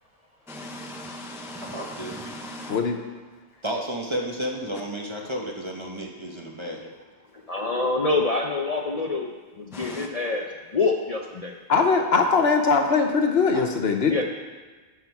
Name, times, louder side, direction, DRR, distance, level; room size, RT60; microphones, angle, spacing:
voice 1, 0.5-2.8 9.7-10.1, left 1 dB, 5° right, 2 dB, 0.4 m, -38 dB
voice 2, 1.6-2.2 2.6-2.8 3.6-6.9, equal, 25° right, 0 dB, 1.0 m, -32 dB
voice 3, 7.5-9.3 9.6-10.5 10.7-11.5 14.1-14.2, left 3 dB, 40° left, 1 dB, 0.6 m, -25 dB
voice 4, 11.7-14.2, left 4 dB, 65° left, 5 dB, 1.1 m, -21 dB
11.5 x 6.0 x 4.6 m, 1.4 s
omnidirectional pair, 1.2 m